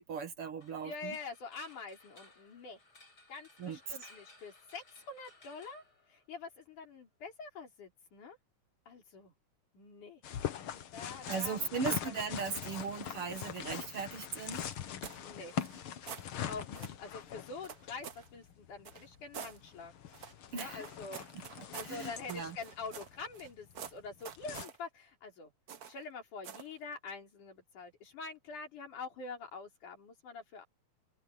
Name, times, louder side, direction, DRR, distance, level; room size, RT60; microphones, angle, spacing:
voice 1, 0.0-1.2 3.6-4.0 11.3-14.7 20.5-20.8 21.3-22.6, right 5 dB, 55° right, 2.1 m, -38 dB
sound 1, 0.6-6.6, left 2 dB, 30° left, 6.4 m, -60 dB
voice 2, 0.8-2.8 3.3-5.8 6.1-8.4 8.9-9.3 9.7-10.2 10.9-11.8 15.2-15.5 16.5-19.9 20.5-21.2 21.7-25.5 25.9-30.7, left 4 dB, 85° left, 5.9 m, -46 dB
sound 2, 10.2-24.7, left 9 dB, 55° left, 1.7 m, -43 dB
sound 3, 14.5-15.2 15.5-16.3 16.7-17.0 17.6-18.3 18.8-19.6 20.1-23.5 23.7-24.8 25.7-26.0 26.4-26.7, right 7 dB, 85° right, 0.8 m, -47 dB
open air
omnidirectional pair, 3.5 m